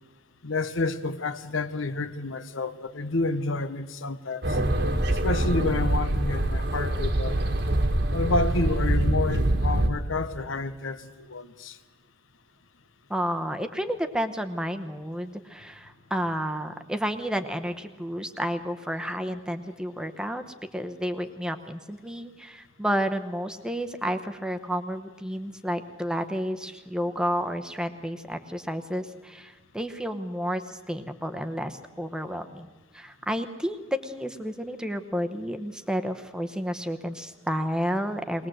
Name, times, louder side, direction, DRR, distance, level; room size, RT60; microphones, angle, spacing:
voice 1, 0.4-4.6 5.2-7.4 8.1-11.8, left 3 dB, 90° left, 1.0 m, -29 dB
sound 1, 4.4-9.9, right 1 dB, 60° right, 1.5 m, -24 dB
voice 2, 13.1-32.7 32.9-38.5, equal, 5° right, 0.9 m, -31 dB
21.0 x 19.5 x 7.8 m
head